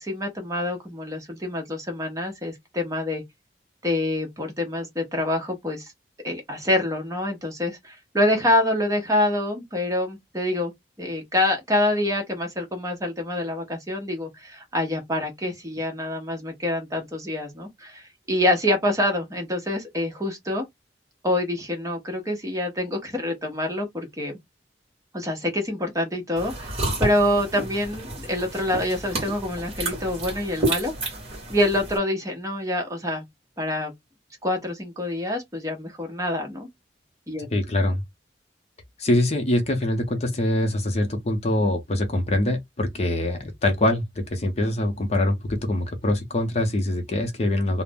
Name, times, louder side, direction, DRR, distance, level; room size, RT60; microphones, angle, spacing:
voice 1, 0.0-3.2 3.8-5.9 6.2-10.7 11.0-20.6 21.2-24.3 25.1-30.9 31.5-33.2 33.6-33.9 34.4-36.7 37.3-37.5, left 1 dB, 20° right, 0.8 m, -26 dB
sound 1, 26.4-32.0, right 2 dB, 35° right, 1.2 m, -30 dB
voice 2, 37.5-38.0 39.0-47.8, left 1 dB, 35° left, 0.6 m, -24 dB
2.5 x 2.0 x 3.4 m
head